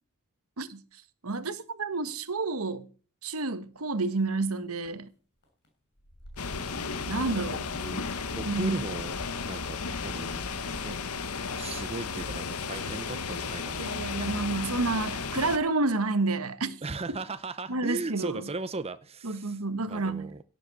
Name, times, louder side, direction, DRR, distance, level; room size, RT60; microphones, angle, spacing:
voice 1, 1.2-2.9 3.2-5.1 7.1-7.6 8.5-8.8 13.8-16.8 17.7-18.4 19.2-20.3, right 3 dB, 70° right, 1.3 m, -29 dB
sound 1, 4.2-4.9 5.4-5.7 6.0-7.1 7.4-11.0, equal, 50° left, 7.4 m, -52 dB
sound 2, 6.4-15.6, left 5 dB, 80° left, 1.3 m, -34 dB
voice 2, 6.4-8.0 8.4-9.2 9.4-10.4 10.8-11.0 11.6-13.8 14.2-14.4 16.8-20.4, right 3 dB, 25° right, 0.7 m, -38 dB
17.5 x 7.6 x 7.1 m
head